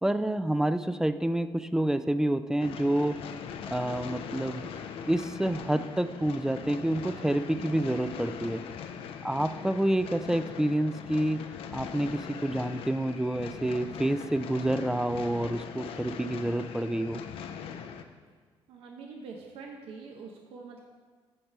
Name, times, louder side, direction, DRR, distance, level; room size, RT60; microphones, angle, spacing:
voice 1, 0.0-3.2 3.7-4.7 5.1-8.6 9.2-11.4 11.7-17.2, right 1 dB, 5° right, 13 dB, 0.3 m, -28 dB
sound 1, 2.6-18.0, left 7 dB, 75° left, 0.5 m, -41 dB
voice 2, 18.7-20.8, right 4 dB, 75° right, 1 dB, 0.8 m, -44 dB
8.6 x 3.3 x 6.6 m, 1.5 s
cardioid pair, 95°, 10 cm